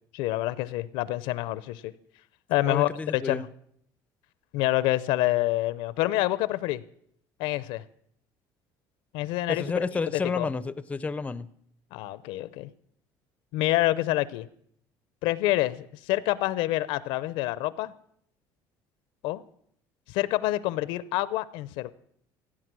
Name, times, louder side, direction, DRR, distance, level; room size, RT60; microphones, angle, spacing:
voice 1, 0.1-1.9 2.5-3.5 4.5-6.8 7.4-7.8 9.1-10.5 11.9-12.7 13.5-14.5 15.2-17.9 19.2-19.4 20.1-21.9, left 16 dB, 80° left, 18 dB, 0.6 m, -27 dB
voice 2, 2.7-3.4 9.5-11.5, left 4 dB, 15° left, 16 dB, 0.5 m, -30 dB
16.0 x 8.8 x 6.1 m, 0.68 s
cardioid pair, 130°, 9 cm